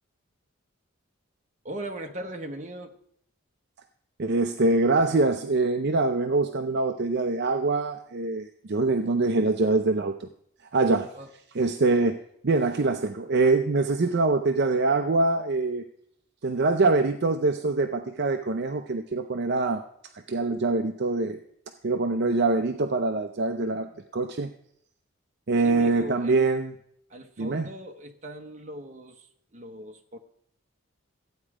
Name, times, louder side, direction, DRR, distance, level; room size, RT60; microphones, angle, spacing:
voice 1, 1.6-3.0 11.1-11.3 25.6-26.5 27.1-30.2, right 1 dB, 35° right, 4 dB, 1.1 m, -39 dB
voice 2, 4.2-10.3 10.7-11.1 11.5-15.8 16.4-19.8 20.3-21.4 21.8-24.5 25.5-26.7 27.4-27.7, right 3 dB, 50° right, 6 dB, 0.6 m, -24 dB
13.5 x 8.9 x 4.8 m, 0.71 s
head